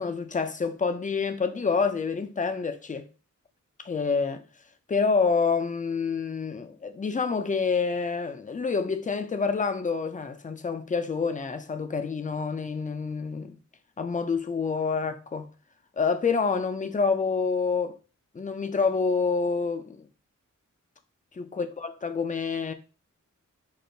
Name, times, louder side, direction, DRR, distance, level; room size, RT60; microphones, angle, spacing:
voice 1, 0.0-3.1 3.8-4.4 4.9-13.6 14.0-15.5 16.0-17.9 18.3-20.1 21.3-22.7, left 5 dB, 25° left, 0.4 m, -27 dB
5.9 x 2.1 x 2.6 m
wide cardioid pair, 110°, 31 cm